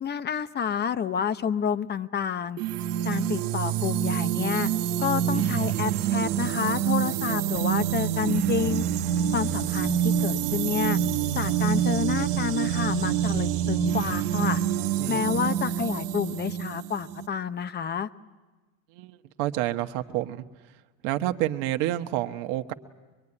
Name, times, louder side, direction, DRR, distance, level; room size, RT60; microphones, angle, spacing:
voice 1, 0.0-2.6 3.0-4.7 5.0-8.9 9.3-11.0 11.3-14.6 15.1-18.1, left 7 dB, 25° left, 13 dB, 0.8 m, -29 dB
sound 1, 2.6-17.3, right 10 dB, 90° right, 1.2 m, -26 dB
sound 2, 7.3-14.3, left 2 dB, 5° left, 1.1 m, -49 dB
voice 2, 18.9-20.4 21.0-22.7, right 14 dB, 65° right, 6 dB, 1.4 m, -29 dB
24.5 x 22.0 x 9.9 m, 1.2 s
supercardioid pair, 120°, 45 cm